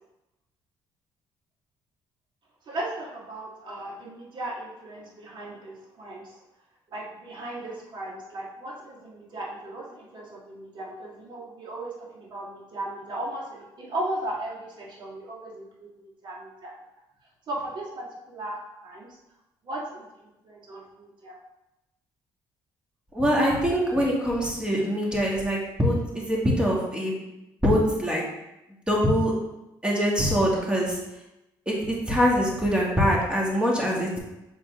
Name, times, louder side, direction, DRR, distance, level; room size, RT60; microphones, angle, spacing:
voice 1, 2.7-6.4 6.9-16.7 17.5-19.1 19.6-20.0 20.4-21.4, right 1 dB, 55° right, -3 dB, 1.7 m, -36 dB
voice 2, 23.1-27.2 27.6-28.2 28.9-29.3 29.8-31.0 31.7-34.2, equal, 10° right, -3 dB, 1.9 m, -23 dB
7.3 x 4.1 x 3.5 m, 0.93 s
cardioid pair, 85°, 9 cm